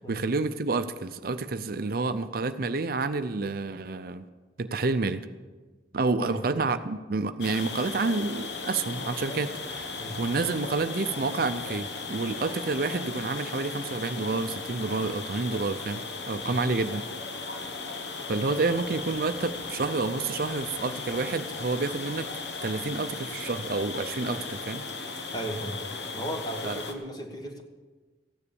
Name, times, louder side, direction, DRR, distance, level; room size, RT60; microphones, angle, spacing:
voice 1, 0.0-4.2 4.6-5.3 5.9-16.0 16.3-17.1 18.3-22.3 22.6-24.9 26.6-26.8, right 3 dB, 55° right, 10 dB, 0.5 m, -29 dB
sound 1, 7.4-26.9, left 4 dB, 70° left, 1.4 m, -37 dB
voice 2, 25.3-25.8 26.1-27.6, right 1 dB, 20° left, 3 dB, 1.5 m, -35 dB
15.0 x 9.9 x 6.9 m, 1.3 s
head